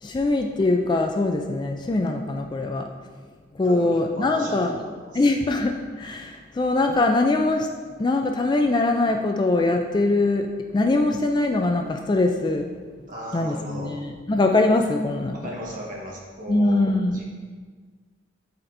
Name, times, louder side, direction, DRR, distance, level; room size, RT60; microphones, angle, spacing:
voice 1, 0.0-2.9 3.6-4.8 5.1-7.7 8.0-10.5 10.7-12.7 13.3-15.4 16.5-17.2, left 2 dB, 20° left, 3 dB, 0.3 m, -22 dB
voice 2, 3.6-5.2 13.1-13.9 15.3-16.9 17.1-17.2, equal, 45° right, -3 dB, 1.4 m, -36 dB
11.5 x 4.2 x 2.6 m, 1.5 s
head